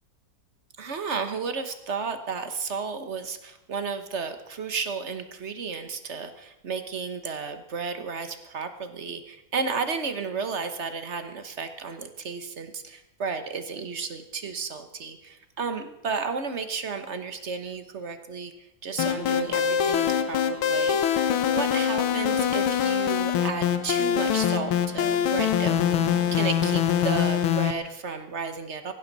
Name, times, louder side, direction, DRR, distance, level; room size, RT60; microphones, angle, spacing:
voice 1, 0.8-18.5 18.8-21.0 21.5-28.9, right 5 dB, 40° right, 8 dB, 1.2 m, -33 dB
sound 1, 19.0-27.7, left 8 dB, 85° left, 1.8 m, -24 dB
18.0 x 15.5 x 4.1 m, 0.89 s
omnidirectional pair, 2.2 m